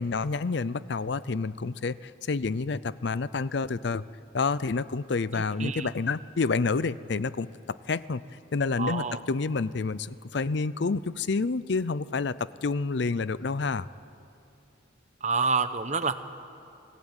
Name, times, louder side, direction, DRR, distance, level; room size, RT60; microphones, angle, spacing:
voice 1, 0.0-4.1 4.3-8.2 8.5-13.9, left 4 dB, 60° left, 17 dB, 0.5 m, -29 dB
voice 2, 8.8-9.2 15.2-16.1, right 4 dB, 35° right, 11 dB, 1.0 m, -27 dB
29.5 x 18.0 x 9.0 m, 2.7 s
head